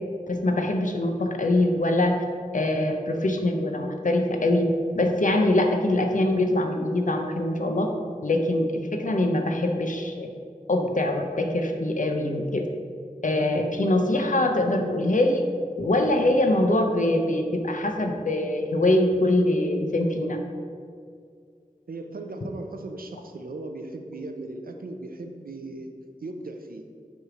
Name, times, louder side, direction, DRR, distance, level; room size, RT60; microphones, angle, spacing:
voice 1, 0.3-2.2 2.5-4.7 4.9-7.9 8.2-10.3 10.7-12.7 13.2-15.4 15.8-20.4, left 1 dB, 65° left, 4 dB, 0.7 m, -23 dB
voice 2, 21.9-25.9 26.2-26.8, right 2 dB, 85° right, 5 dB, 0.6 m, -37 dB
7.9 x 3.3 x 5.0 m, 2.2 s
wide cardioid pair, 55°, 15 cm